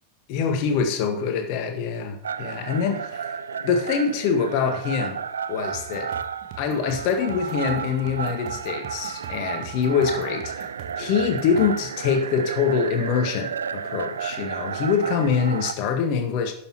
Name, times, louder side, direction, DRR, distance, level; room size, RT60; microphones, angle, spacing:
voice 1, 0.3-3.4 3.6-5.2 5.5-6.1 6.6-10.7 11.0-16.5, left 6 dB, 45° left, 6 dB, 1.7 m, -24 dB
sound 1, 2.2-15.7, right 7 dB, 70° right, 0.4 m, -32 dB
sound 2, 5.7-11.9, right 8 dB, 45° right, 1.6 m, -42 dB
11.5 x 6.8 x 4.5 m, 0.64 s
figure-of-eight pair, 90°, 0 cm